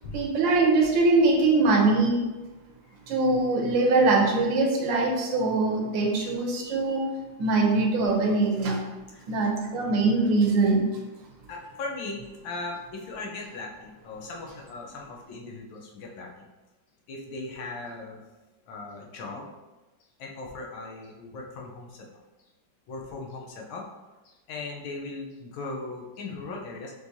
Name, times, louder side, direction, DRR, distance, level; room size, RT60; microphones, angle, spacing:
voice 1, 0.1-2.2 3.1-7.0 7.4-8.8 9.3-10.8, right 3 dB, 80° right, 1 dB, 1.4 m, -22 dB
voice 2, 11.5-16.5 17.1-18.2 18.7-19.5 20.2-22.1 22.9-23.8 24.2-26.9, left 3 dB, 85° left, 0 dB, 1.6 m, -38 dB
5.6 x 3.1 x 2.7 m, 1.1 s
omnidirectional pair, 2.1 m